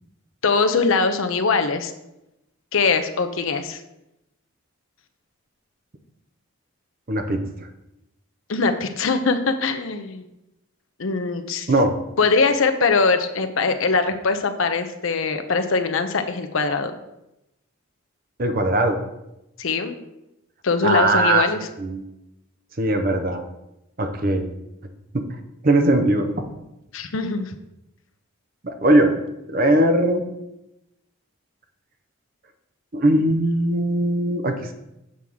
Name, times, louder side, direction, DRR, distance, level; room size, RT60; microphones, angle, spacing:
voice 1, 0.4-1.9 2.7-3.8 8.5-10.3 11.0-11.7 12.2-16.9 19.6-19.9 20.6-21.6 26.9-27.5, left 4 dB, 70° left, 7 dB, 0.7 m, -22 dB
voice 2, 7.1-7.4 11.7-11.9 18.4-19.0 20.8-21.5 21.8-22.0 22.8-23.4 24.0-24.5 25.1-25.2 25.6-26.3 28.6-29.2 29.5-30.2 32.9-34.7, right 1 dB, 40° right, 6 dB, 0.7 m, -19 dB
7.5 x 3.5 x 6.1 m, 0.90 s
head